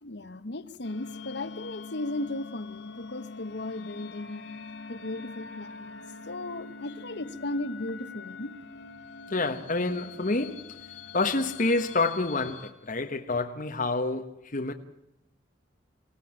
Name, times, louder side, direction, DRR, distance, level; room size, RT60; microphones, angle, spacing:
voice 1, 0.0-4.5 4.9-8.5, left 2 dB, 65° left, 1.2 m, -36 dB
sound 1, 0.8-12.7, left 4 dB, 80° left, 3.0 m, -43 dB
voice 2, 9.3-10.7 11.1-14.7, left 3 dB, 45° left, 1.3 m, -28 dB
26.0 x 17.5 x 8.8 m
head